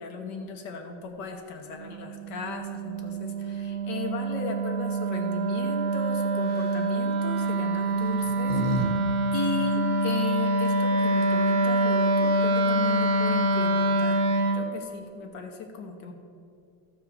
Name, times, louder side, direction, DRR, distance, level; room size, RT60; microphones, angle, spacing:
voice 1, 0.0-9.0 9.3-14.2 14.5-16.1, left 4 dB, 70° left, 4 dB, 1.5 m, -36 dB
Wind instrument woodwind instrument, 1.7-14.7, right 2 dB, 65° right, 0.5 m, -25 dB
sound 1, 6.4-6.8 7.8-8.9 9.2-9.3 10.9-11.0 11.2-11.6, left 1 dB, 30° left, 1.2 m, -32 dB
13.0 x 4.7 x 6.9 m, 2.5 s
omnidirectional pair, 2.0 m